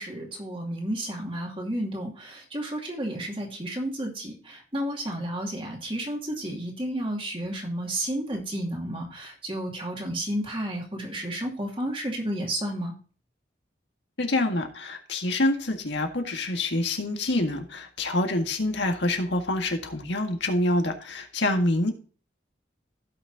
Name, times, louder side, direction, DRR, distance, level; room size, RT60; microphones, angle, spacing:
voice 1, 0.0-12.9, right 1 dB, 30° right, 0 dB, 2.5 m, -32 dB
voice 2, 14.2-21.9, left 1 dB, 75° left, 4 dB, 1.8 m, -26 dB
16.0 x 6.1 x 2.7 m, 0.39 s
head